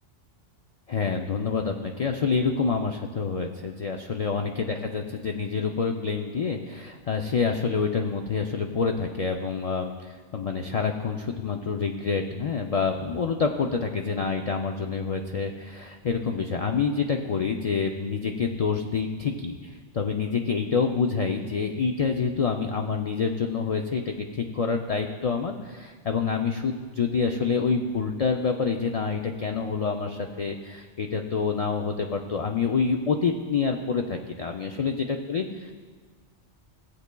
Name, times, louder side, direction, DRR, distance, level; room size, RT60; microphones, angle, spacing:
voice 1, 0.9-35.7, left 5 dB, 60° left, 3 dB, 0.3 m, -27 dB
16.5 x 8.0 x 2.2 m, 1.5 s
omnidirectional pair, 1.2 m